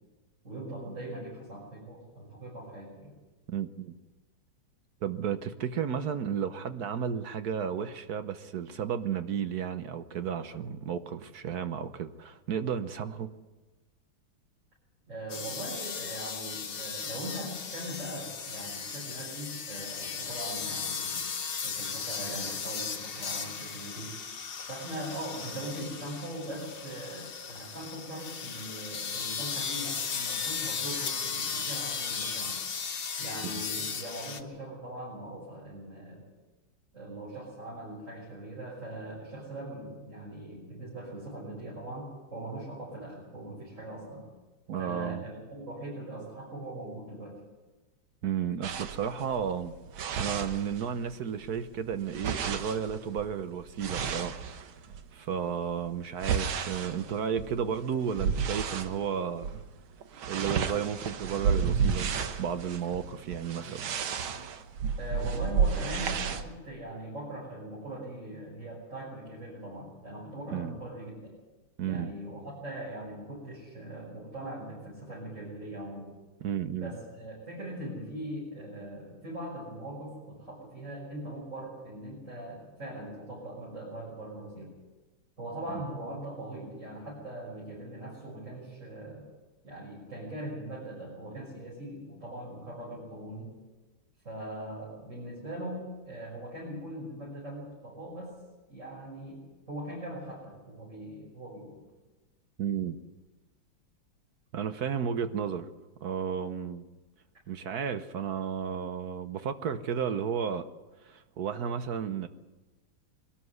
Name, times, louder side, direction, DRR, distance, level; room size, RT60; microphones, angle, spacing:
voice 1, 0.4-3.1 15.1-21.3 21.6-24.1 24.7-32.6 33.2-36.2 36.9-44.2 44.8-47.4 65.0-71.3 71.8-76.1 76.8-84.7 85.4-89.3 89.6-93.5 94.2-98.3 98.7-99.4 99.7-101.8, right 1 dB, 35° right, -6 dB, 6.5 m, -41 dB
voice 2, 3.5-3.9 5.0-13.3 33.4-33.6 44.7-45.2 48.2-54.4 55.1-59.5 60.3-63.9 70.5-70.7 71.8-72.1 76.4-76.9 85.7-85.8 102.6-103.0 104.5-105.7 106.0-106.8 107.5-110.7 111.0-112.3, right 7 dB, 60° right, 10 dB, 1.3 m, -33 dB
sound 1, 15.3-34.4, left 6 dB, 65° left, 1.9 m, -36 dB
sound 2, 48.6-51.1 51.4-55.1 55.6-59.0 59.4-59.7 59.9-66.5, right 6 dB, 90° right, 2.0 m, -32 dB
22.5 x 13.0 x 9.6 m, 1.2 s
omnidirectional pair, 2.2 m